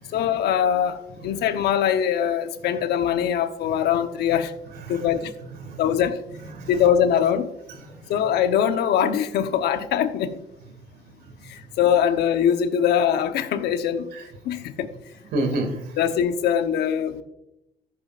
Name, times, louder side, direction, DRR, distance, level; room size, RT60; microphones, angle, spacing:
voice 1, 0.1-4.5 4.9-5.3 5.8-6.2 6.7-7.5 8.1-10.4 11.4-14.1 14.4-14.9 16.0-17.2, left 9 dB, 75° left, 9 dB, 1.0 m, -22 dB
voice 2, 10.9-11.3 14.1-14.2 15.3-15.9, right 1 dB, 70° right, 5 dB, 2.3 m, -30 dB
14.5 x 8.4 x 2.5 m, 0.85 s
cardioid pair, 110°, 17 cm